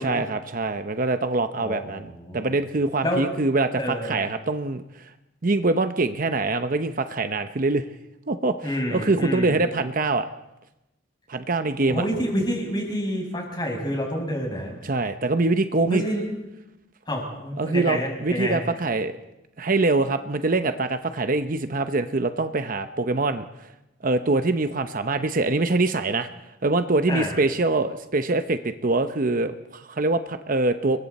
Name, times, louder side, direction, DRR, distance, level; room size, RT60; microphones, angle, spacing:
voice 1, 0.0-4.8 5.4-7.8 8.3-10.3 11.3-12.0 14.8-16.0 17.6-19.1 19.6-23.4 24.0-26.3 26.6-31.0, right 2 dB, 45° right, 9 dB, 0.8 m, -24 dB
voice 2, 1.6-2.6 3.0-3.3 3.8-4.2 8.6-9.6 11.9-14.7 15.8-16.2 17.1-18.6 27.1-27.3, equal, 25° left, 0 dB, 6.3 m, -28 dB
30.0 x 22.5 x 4.2 m, 0.93 s
head